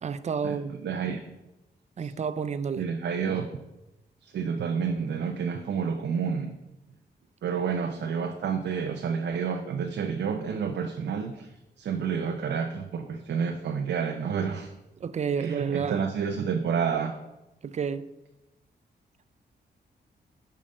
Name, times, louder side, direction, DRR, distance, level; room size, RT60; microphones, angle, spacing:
voice 1, 0.0-0.8 1.1-1.2 2.0-2.9 15.0-16.1 17.6-18.1, right 6 dB, 40° right, 14 dB, 0.4 m, -30 dB
voice 2, 0.8-1.2 2.8-3.5 4.2-6.6 7.4-11.5 11.8-14.7 15.4-17.1, right 6 dB, 85° right, 4 dB, 0.7 m, -29 dB
7.6 x 5.0 x 5.3 m, 0.96 s
wide cardioid pair, 135°, 18 cm